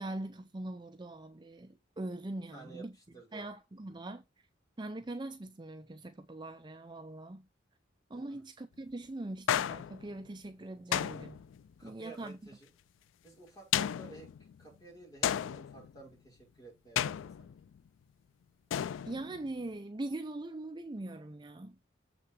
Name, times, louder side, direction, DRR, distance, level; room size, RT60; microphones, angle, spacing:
voice 1, 0.0-3.0 3.3-4.2 4.8-7.5 8.1-11.4 11.8-12.4 19.1-21.8, right 2 dB, 25° right, 0.5 m, -42 dB
voice 2, 2.5-3.5 8.1-8.4 11.8-12.7 13.2-14.3 14.6-17.5, right 3 dB, 20° left, 5.5 m, -53 dB
sound 1, 9.5-10.3 10.9-11.7 13.7-14.5 15.2-16.0 17.0-17.8 18.7-19.5, left 10 dB, 85° left, 0.3 m, -33 dB
7.0 x 6.0 x 4.8 m
head